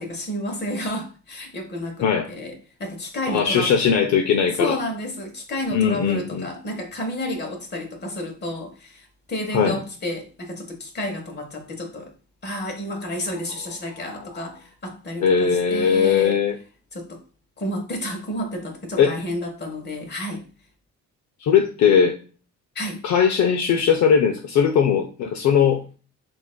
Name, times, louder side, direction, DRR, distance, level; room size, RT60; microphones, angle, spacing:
voice 1, 0.0-2.5 2.8-3.7 4.5-12.1 12.4-16.4 16.9-17.2 17.6-20.4 22.7-23.0, left 1 dB, 35° left, 1.2 m, -31 dB
voice 2, 3.3-4.8 5.7-6.5 9.5-9.8 14.2-14.4 15.2-16.6 19.0-19.2 21.4-22.2 23.0-25.8, left 7 dB, 65° left, 0.6 m, -19 dB
5.7 x 2.6 x 2.2 m
cardioid pair, 90°, 30 cm